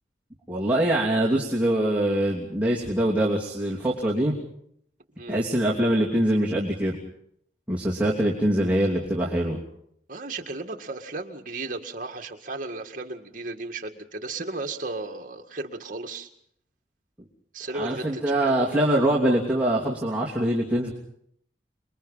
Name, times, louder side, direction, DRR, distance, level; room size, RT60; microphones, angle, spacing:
voice 1, 0.5-4.3 5.3-7.0 7.7-9.6 17.7-20.9, right 1 dB, 5° right, -5 dB, 2.9 m, -23 dB
voice 2, 10.1-16.3 17.5-18.8, right 2 dB, 45° right, 4 dB, 2.0 m, -35 dB
28.0 x 22.0 x 5.7 m, 0.71 s
head